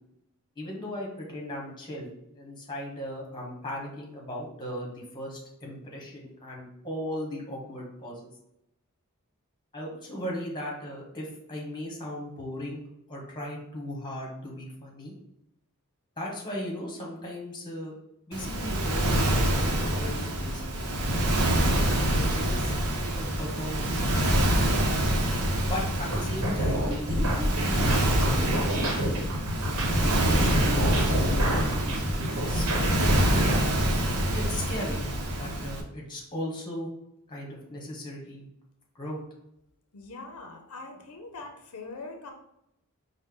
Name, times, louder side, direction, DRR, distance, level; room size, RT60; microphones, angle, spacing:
voice 1, 0.6-8.2 9.7-12.8 13.1-15.1 16.2-18.0 18.3-21.6 22.1-22.7 23.1-25.0 25.7-29.1 29.9-33.5 34.3-35.0 35.3-36.9 37.3-38.5 38.9-39.2, left 1 dB, 20° left, -1 dB, 1.1 m, -37 dB
Waves surf, 18.3-35.8, right 1 dB, 90° right, 0.7 m, -26 dB
sound 1, 26.0-33.6, equal, 70° right, 1.0 m, -28 dB
voice 2, 39.9-42.3, left 3 dB, 75° left, 3 dB, 0.6 m, -42 dB
5.1 x 2.1 x 3.7 m, 0.80 s
head